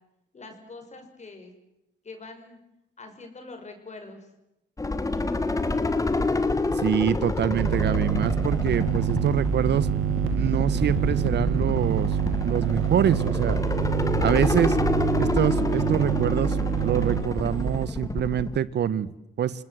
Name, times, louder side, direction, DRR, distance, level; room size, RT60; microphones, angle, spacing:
voice 1, 0.3-1.5 2.0-2.6 3.0-4.3, left 3 dB, 35° left, 5 dB, 5.6 m, -43 dB
sound 1, 4.8-18.6, left 3 dB, 15° left, 1.5 m, -28 dB
voice 2, 6.8-9.9 10.3-12.1 12.4-13.6 14.2-14.8 15.2-16.6 16.8-19.1 19.4-19.5, right 9 dB, 60° right, 18 dB, 1.2 m, -25 dB
sound 2, 7.5-17.9, right 9 dB, 85° right, 2.2 m, -27 dB
28.5 x 19.5 x 7.7 m, 0.87 s
cardioid pair, 90°, 20 cm